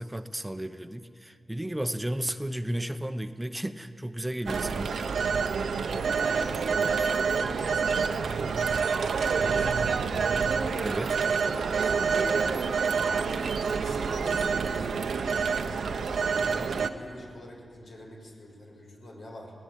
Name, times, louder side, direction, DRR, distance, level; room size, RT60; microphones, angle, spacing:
voice 1, 0.0-5.0 10.8-11.2, right 1 dB, 10° right, 9 dB, 0.9 m, -33 dB
Telephone, 4.5-16.9, right 5 dB, 80° right, 0.9 m, -27 dB
voice 2, 5.7-10.1 11.8-13.2 13.7-15.6 16.0-19.5, left 1 dB, 75° left, -1 dB, 5.7 m, -44 dB
21.5 x 17.5 x 9.2 m, 2.3 s
cardioid pair, 50°, 0 cm